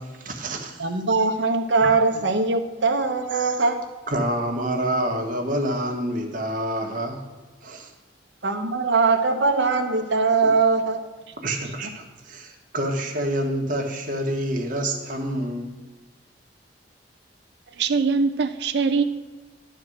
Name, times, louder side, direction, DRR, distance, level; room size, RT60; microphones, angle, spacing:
voice 1, 0.0-0.8 1.8-1.9 3.3-3.6 4.1-7.2 7.6-7.9 10.4-10.5 11.4-15.7, right 1 dB, 45° right, 2 dB, 1.4 m, -27 dB
voice 2, 0.8-3.8 8.4-11.0, right 4 dB, 85° right, 4 dB, 0.9 m, -21 dB
voice 3, 17.8-19.0, right 4 dB, 65° right, 8 dB, 0.5 m, -22 dB
11.0 x 4.6 x 7.8 m, 1.3 s
head